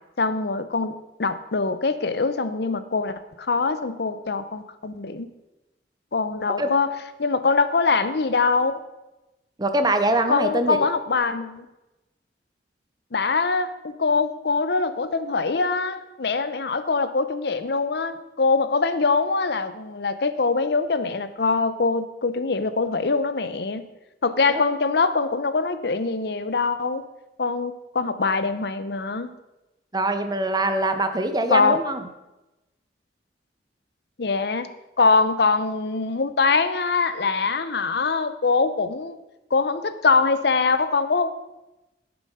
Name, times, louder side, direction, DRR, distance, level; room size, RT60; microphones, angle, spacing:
voice 1, 0.2-5.3 6.1-6.9 7.2-8.7 10.3-11.7 13.1-23.8 24.2-27.0 27.4-29.3 31.5-31.8 34.2-34.7 35.0-39.2 39.5-41.3, left 4 dB, 65° left, 12 dB, 0.7 m, -23 dB
voice 2, 9.6-10.8 24.5-24.6 29.9-32.0, right 2 dB, 20° right, 8 dB, 0.8 m, -23 dB
12.0 x 7.0 x 5.5 m, 1.0 s
head